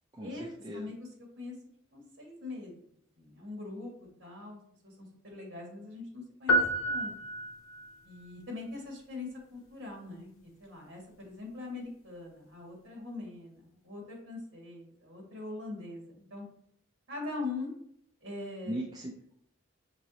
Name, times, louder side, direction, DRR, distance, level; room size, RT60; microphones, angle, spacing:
voice 1, 0.2-0.9 18.7-19.3, right 1 dB, 20° right, -1 dB, 0.4 m, -39 dB
voice 2, 0.7-1.1 1.4-1.5 1.9-2.7 3.2-3.9 4.2-7.1 8.0-10.3 10.6-16.5 17.1-17.7 18.2-18.8, left 3 dB, 60° right, -1 dB, 1.9 m, -42 dB
sound 1, 6.5-7.9, equal, 85° left, 0.6 m, -29 dB
6.1 x 2.9 x 2.8 m, 0.69 s
head